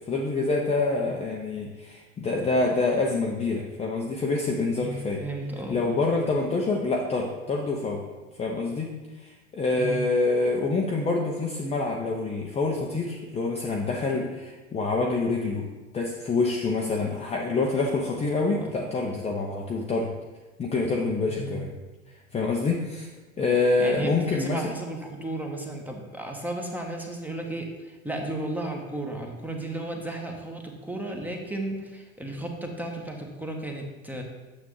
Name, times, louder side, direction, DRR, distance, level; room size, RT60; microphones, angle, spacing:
voice 1, 0.0-5.2 5.7-8.1 8.4-15.7 15.9-20.1 20.6-21.7 22.3-23.1 23.4-24.7, left 3 dB, 15° left, -1 dB, 0.7 m, -26 dB
voice 2, 5.2-5.8 9.8-10.0 18.4-18.7 21.3-21.6 23.8-34.2, right 1 dB, 5° right, 2 dB, 1.1 m, -34 dB
9.0 x 7.0 x 3.2 m, 1.2 s
figure-of-eight pair, 80°, 42 cm